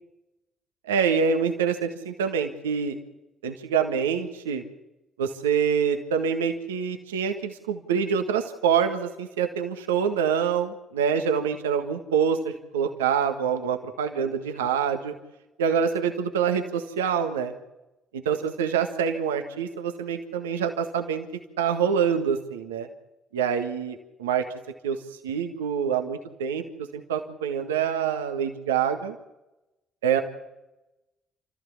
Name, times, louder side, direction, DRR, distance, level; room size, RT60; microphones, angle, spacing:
voice 1, 0.9-3.0 3.4-4.6 5.2-15.1 15.6-17.5 18.1-21.3 21.6-22.9 23.3-24.4 24.8-25.0 25.2-26.6 26.9-29.2 30.0-30.2, right 7 dB, 85° right, 6 dB, 1.6 m, -26 dB
29.0 x 14.5 x 7.2 m, 0.98 s
hypercardioid pair, 50°, 0 cm